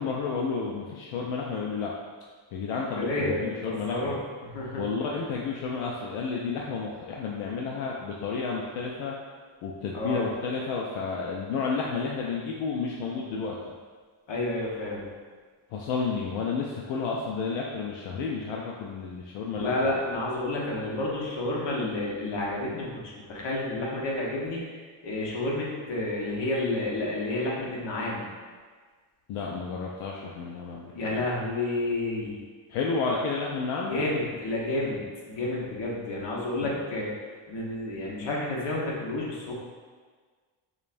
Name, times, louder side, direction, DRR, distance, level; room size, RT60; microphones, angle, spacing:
voice 1, 0.0-1.9 2.5-4.1 4.8-9.2 9.6-13.6 15.7-19.9 29.3-31.3 32.7-34.1 36.6-36.7, left 4 dB, 85° left, -2 dB, 0.5 m, -31 dB
voice 2, 3.0-4.2 4.4-4.8 9.9-10.2 14.3-15.1 19.5-24.6 25.0-28.3 30.9-32.4 33.9-35.0 35.3-37.1 37.5-39.5, left 2 dB, 60° left, -4 dB, 1.1 m, -30 dB
5.0 x 2.3 x 2.5 m, 1.5 s
cardioid pair, 105°, 49 cm